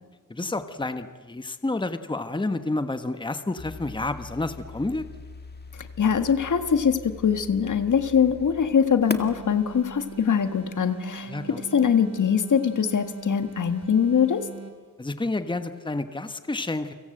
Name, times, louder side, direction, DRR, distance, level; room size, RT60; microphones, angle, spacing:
voice 1, 0.3-5.0 11.3-11.6 15.0-16.9, left 2 dB, 15° left, 9 dB, 1.3 m, -30 dB
sound 1, 3.6-10.5, left 3 dB, 30° left, 2.0 m, -41 dB
voice 2, 5.8-14.5, left 7 dB, 65° left, 9 dB, 1.7 m, -23 dB
sound 2, 9.0-14.9, right 5 dB, 50° right, 4.3 m, -40 dB
30.0 x 25.0 x 7.9 m, 1.4 s
wide cardioid pair, 120°, 33 cm